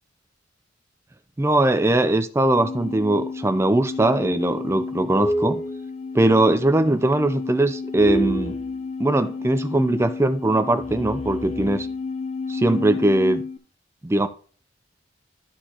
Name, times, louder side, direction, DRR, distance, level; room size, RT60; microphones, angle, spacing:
voice 1, 1.4-5.6 6.1-8.6 9.0-11.9 12.5-13.4 14.0-14.3, right 1 dB, 15° right, 0.4 m, -20 dB
sound 1, 2.4-13.6, left 2 dB, 35° left, 0.6 m, -30 dB
13.0 x 4.5 x 2.9 m
head